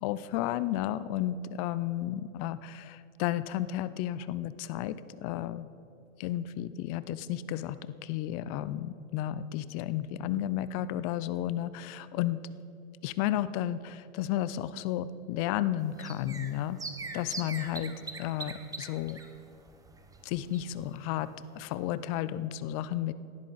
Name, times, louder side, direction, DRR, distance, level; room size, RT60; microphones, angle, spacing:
voice 1, 0.0-5.7 6.2-12.4 13.0-16.8 17.1-17.9 18.2-19.2 20.2-21.3 21.5-23.1, left 12 dB, 30° left, 15 dB, 0.4 m, -32 dB
sound 1, 15.8-21.0 21.2-21.3 21.6-21.7, right 3 dB, 10° right, 1.0 m, -43 dB
18.0 x 12.5 x 4.0 m, 2.9 s
hypercardioid pair, 120°, 40 cm